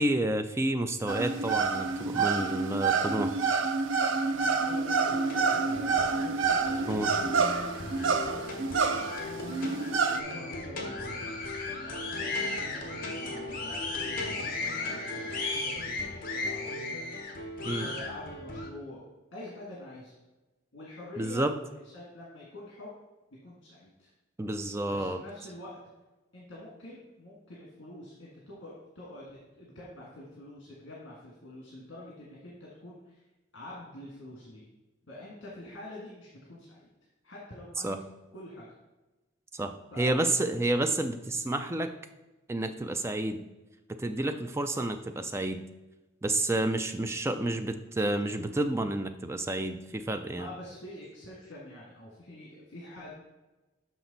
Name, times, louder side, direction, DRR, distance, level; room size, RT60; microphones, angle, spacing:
voice 1, 0.0-3.3 6.9-7.1 17.6-17.9 21.2-21.5 24.4-25.2 37.8-38.0 39.5-41.9 42.5-43.4 43.9-45.6 46.2-50.5, right 1 dB, 15° right, 7 dB, 0.4 m, -30 dB
sound 1, 1.1-10.2, right 4 dB, 75° right, 0.5 m, -28 dB
voice 2, 4.3-6.1 6.6-7.0 7.2-7.6 7.9-8.7 9.3-19.0 19.3-20.2 20.7-22.9 23.4-24.1 24.9-25.8 26.3-33.2 33.5-34.7 35.1-36.9 37.2-37.9 38.3-38.7 39.9-40.2 50.4-53.1, left 1 dB, 65° left, -5 dB, 1.6 m, -46 dB
sound 2, 5.0-18.7, left 2 dB, 45° left, 1.0 m, -36 dB
6.1 x 5.9 x 3.9 m, 1.1 s
head